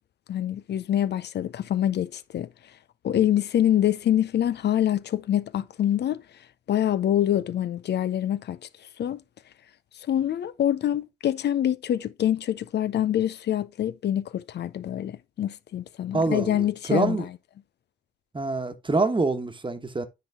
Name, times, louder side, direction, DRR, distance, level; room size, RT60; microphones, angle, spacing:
voice 1, 0.3-2.5 3.0-6.2 6.7-8.6 9.0-9.2 10.1-17.3, left 11 dB, 60° left, 0.5 m, -25 dB
voice 2, 16.1-17.3 18.3-20.1, right 3 dB, 25° right, 1.3 m, -26 dB
9.6 x 3.9 x 3.5 m
supercardioid pair, 45°, 19 cm